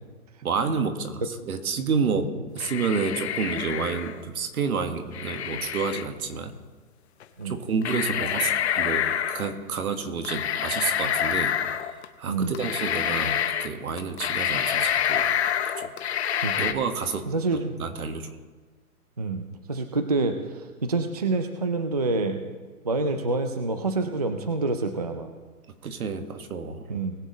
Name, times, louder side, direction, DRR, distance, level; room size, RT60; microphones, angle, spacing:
voice 1, 0.4-2.3 2.5-6.5 7.4-11.5 12.2-15.4 15.8-15.9 16.6-17.2 17.8-18.3 25.8-26.8, right 5 dB, 70° right, 7 dB, 1.7 m, -29 dB
sound 1, 2.6-4.2 5.1-6.0 7.2-7.3 7.8-9.5 10.2-12.1 12.5-13.7 14.0-16.7, left 9 dB, 45° left, 0.8 m, -27 dB
voice 2, 17.3-17.8 19.2-22.4 22.8-25.3 26.9-27.2, right 3 dB, 30° right, 7 dB, 0.4 m, -27 dB
20.5 x 7.2 x 4.0 m, 1.4 s
hypercardioid pair, 155°, 45 cm